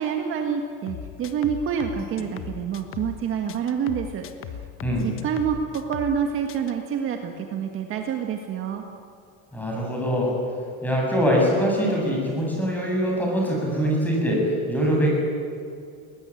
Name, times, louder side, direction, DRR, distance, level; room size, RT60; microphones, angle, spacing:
voice 1, 0.0-4.2 5.0-8.8, right 7 dB, 40° right, 4 dB, 1.8 m, -27 dB
sound 1, 0.9-3.2 3.5-6.2 6.5-6.7, left 9 dB, 40° left, 1.4 m, -38 dB
voice 2, 9.5-10.3 10.8-15.1, equal, 5° left, -2 dB, 7.8 m, -23 dB
20.5 x 20.5 x 9.8 m, 2.4 s
cardioid pair, 145°, 32 cm